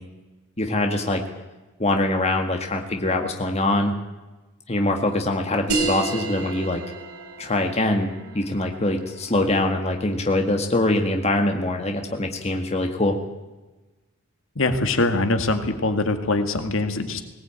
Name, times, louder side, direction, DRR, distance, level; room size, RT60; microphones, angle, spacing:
voice 1, 0.6-1.2 1.8-3.9 4.7-6.8 7.4-13.2, left 2 dB, 30° left, 4 dB, 1.8 m, -23 dB
sound 1, 5.7-10.8, right 3 dB, 75° right, 5.3 m, -32 dB
voice 2, 14.6-17.2, left 2 dB, 60° left, 7 dB, 2.0 m, -23 dB
19.5 x 18.5 x 8.9 m, 1.2 s
head